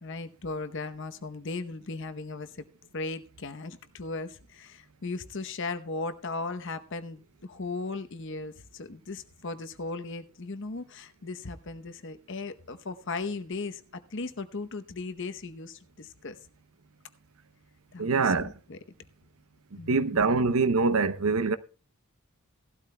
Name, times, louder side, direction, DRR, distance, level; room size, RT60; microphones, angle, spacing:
voice 1, 0.0-2.5 2.9-16.4 17.9-18.8 19.8-20.4, left 3 dB, 60° left, 0.8 m, -37 dB
voice 2, 18.0-18.5 19.9-21.6, right 4 dB, 85° right, 0.7 m, -24 dB
17.0 x 12.0 x 2.2 m
head